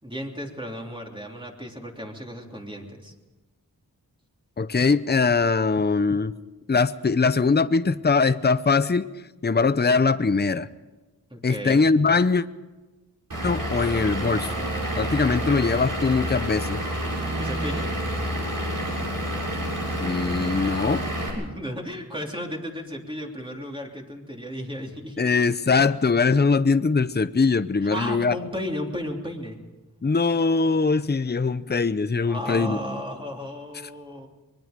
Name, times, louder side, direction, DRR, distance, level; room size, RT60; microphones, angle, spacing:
voice 1, 0.0-3.1 11.3-11.8 17.3-17.9 21.3-25.3 27.9-29.6 32.2-34.3, equal, 15° right, 0 dB, 3.2 m, -34 dB
voice 2, 4.6-6.4 6.7-9.1 9.4-10.7 11.4-12.4 13.4-14.5 15.0-16.8 20.0-21.0 25.2-28.4 30.0-32.8, left 4 dB, 25° left, 13 dB, 0.7 m, -21 dB
Vehicle / Engine, 13.3-21.3, equal, 60° right, 6.8 m, -28 dB
24.5 x 22.0 x 5.2 m, 1.2 s
wide cardioid pair, 80°, 38 cm